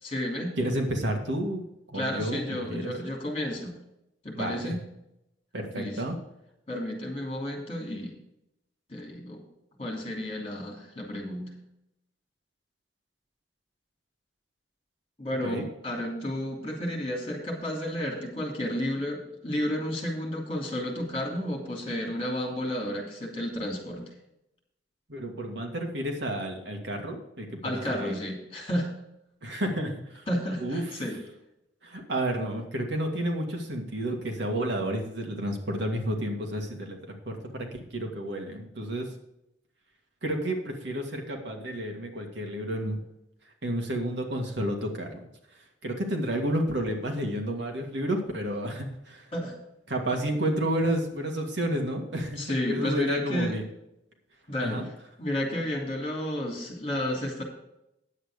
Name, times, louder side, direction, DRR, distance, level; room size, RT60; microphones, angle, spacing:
voice 1, 0.0-0.6 1.9-3.7 4.2-4.8 5.7-6.0 6.7-8.2 8.9-9.4 9.8-11.5 15.2-24.1 27.6-28.9 30.3-31.2 49.3-49.5 52.4-53.5 54.5-54.9 55.2-57.4, left 1 dB, 30° left, 0 dB, 3.0 m, -32 dB
voice 2, 0.6-2.9 4.3-4.8 5.5-6.2 15.4-15.6 25.1-28.2 29.4-30.3 30.6-30.9 31.8-39.1 40.2-43.0 43.6-45.3 45.8-49.3 49.9-52.4 52.7-53.6 54.6-54.8, right 1 dB, 70° right, 3 dB, 1.9 m, -31 dB
9.7 x 8.1 x 5.0 m, 0.85 s
head